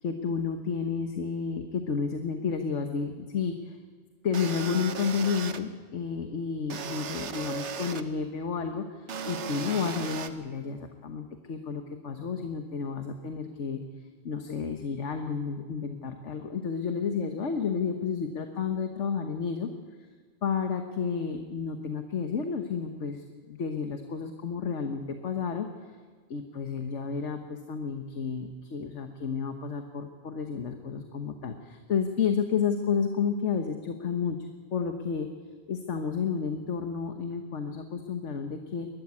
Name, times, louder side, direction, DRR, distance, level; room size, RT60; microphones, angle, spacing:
voice 1, 0.0-3.8 4.2-13.8 14.2-19.7 20.4-25.7 26.3-34.4 34.7-35.3 35.7-38.9, left 6 dB, 85° left, 6 dB, 1.5 m, -31 dB
sound 1, 4.3-5.6 6.7-8.0 9.1-10.3, right 6 dB, 80° right, 1.3 m, -36 dB
22.5 x 13.5 x 9.6 m, 1.6 s
omnidirectional pair, 1.2 m